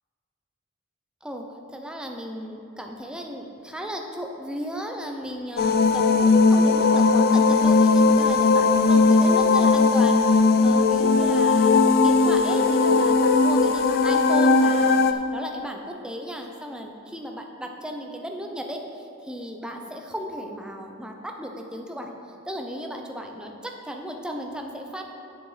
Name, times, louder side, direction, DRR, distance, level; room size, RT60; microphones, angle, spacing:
voice 1, 1.2-22.1 22.5-25.0, equal, 5° right, 2 dB, 0.6 m, -35 dB
sound 1, 5.6-15.1, left 3 dB, 50° left, 0.4 m, -18 dB
9.1 x 6.8 x 4.8 m, 2.7 s
head